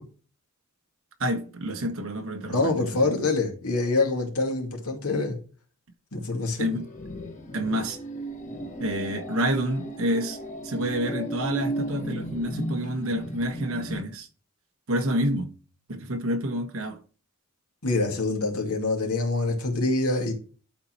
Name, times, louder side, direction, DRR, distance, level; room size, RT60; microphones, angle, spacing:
voice 1, 1.2-2.7 6.6-6.9 7.5-8.0 8.8-10.4 10.6-14.3 14.9-15.5 15.9-17.0, equal, 70° right, 1.4 m, -28 dB
voice 2, 2.5-5.4 6.1-6.7 17.8-20.3, left 3 dB, 85° left, 2.4 m, -25 dB
sound 1, 6.7-14.0, right 1 dB, 35° left, 1.6 m, -35 dB
11.5 x 4.3 x 4.5 m
head